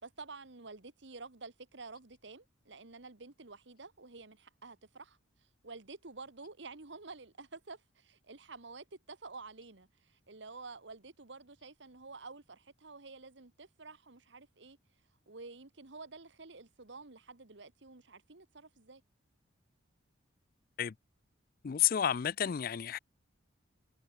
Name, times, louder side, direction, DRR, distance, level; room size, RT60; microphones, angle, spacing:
voice 1, 0.0-5.2 5.6-14.8 15.3-19.0, right 3 dB, 65° right, 1.5 m, -50 dB
voice 2, 21.6-23.0, left 10 dB, 50° left, 0.4 m, -30 dB
head